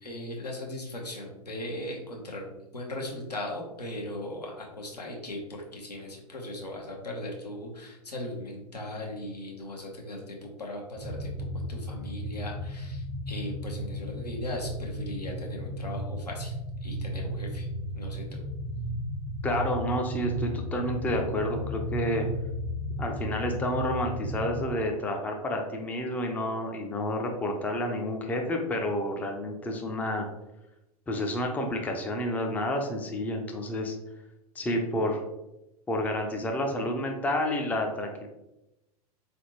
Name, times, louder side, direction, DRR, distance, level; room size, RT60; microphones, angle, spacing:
voice 1, 0.0-16.5 16.8-17.7 17.9-18.4, left 1 dB, 85° left, -1 dB, 1.0 m, -38 dB
sound 1, 11.0-24.7, equal, 70° right, 0.9 m, -34 dB
voice 2, 19.4-22.3 23.0-30.3 31.1-34.0 34.6-35.2 35.9-38.3, left 1 dB, 10° left, 2 dB, 0.4 m, -30 dB
3.7 x 3.3 x 2.9 m, 0.94 s
figure-of-eight pair, 95°, 20 cm